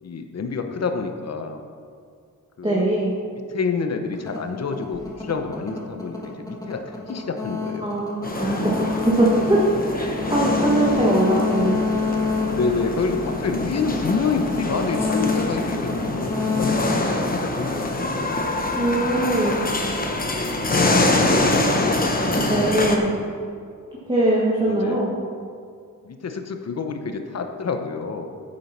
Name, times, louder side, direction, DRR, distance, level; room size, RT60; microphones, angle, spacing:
voice 1, 0.0-1.6 2.6-2.9 3.3-7.9 12.5-18.7 20.6-23.1 24.6-25.0 26.0-28.4, left 4 dB, 50° left, 6 dB, 1.0 m, -28 dB
voice 2, 2.6-3.1 7.8-9.6 9.9-11.9 18.7-19.7 22.3-23.2 24.1-25.1, right 1 dB, 15° right, -5 dB, 1.6 m, -21 dB
sound 1, 4.1-18.0, left 4 dB, 10° left, 1.8 m, -28 dB
sound 2, 8.2-23.0, left 2 dB, 25° left, 1.1 m, -25 dB
9.5 x 7.5 x 5.8 m, 2.3 s
wide cardioid pair, 125°, 33 cm